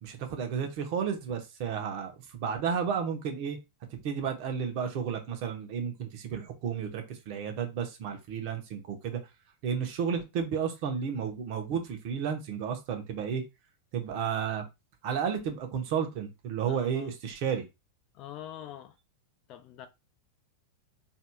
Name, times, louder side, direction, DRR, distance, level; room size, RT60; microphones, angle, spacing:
voice 1, 0.0-3.6 4.0-9.2 9.6-13.4 13.9-14.6 15.0-17.6, right 7 dB, 55° right, 1.1 m, -32 dB
voice 2, 16.7-17.1 18.1-18.9 19.5-19.9, left 11 dB, 45° left, 0.7 m, -44 dB
4.1 x 2.8 x 2.3 m
hypercardioid pair, 105°, 0 cm